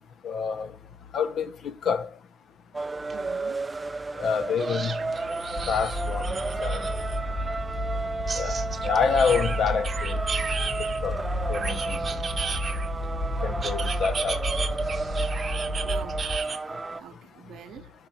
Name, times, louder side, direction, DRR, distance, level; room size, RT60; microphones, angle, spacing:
voice 1, 0.2-0.7 1.1-2.1 4.2-4.9 5.7-6.9 8.4-8.5 8.8-10.2 11.0-11.2 11.5-12.0 13.4-14.4, left 6 dB, 65° left, 0.6 m, -27 dB
sound 1, 2.7-17.0, right 3 dB, 20° right, 0.4 m, -33 dB
sound 2, 3.1-3.2 3.5-3.6 4.6-7.2 8.3-11.0 11.5-13.1 13.6-16.6, right 5 dB, 40° right, 0.8 m, -35 dB
voice 2, 3.1-3.6 13.8-14.0 15.8-16.6 16.9-17.9, right 9 dB, 75° right, 0.8 m, -46 dB
sound 3, 5.5-16.4, equal, 35° left, 1.1 m, -32 dB
5.9 x 3.9 x 5.7 m
cardioid pair, 90°, 0 cm